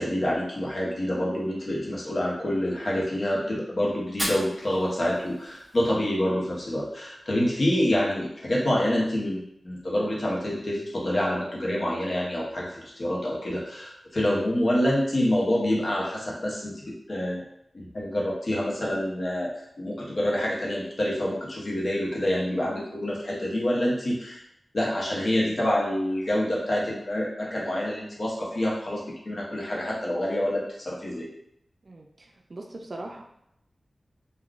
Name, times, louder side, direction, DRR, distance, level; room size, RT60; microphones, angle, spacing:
voice 1, 0.0-17.4 17.7-19.5 19.8-24.4 24.7-31.3, left 1 dB, 50° left, -4 dB, 0.8 m, -27 dB
Fire, 4.0-6.0, equal, 15° right, 1.4 m, -36 dB
voice 2, 31.8-33.2, right 2 dB, 50° right, 1 dB, 0.4 m, -40 dB
3.6 x 2.3 x 2.4 m, 0.75 s
wide cardioid pair, 95°, 0 cm